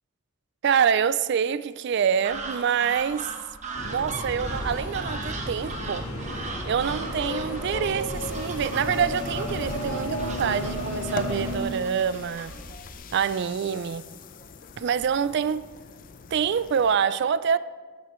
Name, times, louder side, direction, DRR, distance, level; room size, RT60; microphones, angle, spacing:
voice 1, 0.6-3.3 3.8-6.1 6.6-12.6 13.1-14.1 14.8-15.6 16.3-17.6, right 7 dB, 55° right, 0.3 m, -26 dB
sound 1, 2.2-13.0, right 3 dB, 35° right, 1.0 m, -39 dB
sound 2, 3.7-11.6, left 1 dB, 90° left, 1.9 m, -33 dB
sound 3, 8.1-17.0, left 5 dB, 40° left, 0.5 m, -43 dB
11.5 x 11.0 x 3.1 m
head